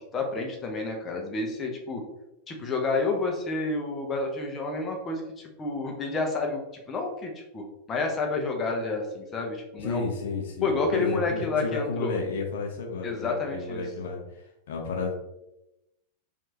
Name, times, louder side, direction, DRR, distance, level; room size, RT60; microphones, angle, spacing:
voice 1, 0.1-2.0 2.5-6.6 6.9-10.1 10.6-12.2 13.0-13.8, left 3 dB, 25° left, 2 dB, 0.8 m, -29 dB
voice 2, 9.8-14.2 14.7-15.1, left 4 dB, 60° left, 1 dB, 0.8 m, -32 dB
4.5 x 2.7 x 2.9 m, 0.90 s
figure-of-eight pair, 90°, 0 cm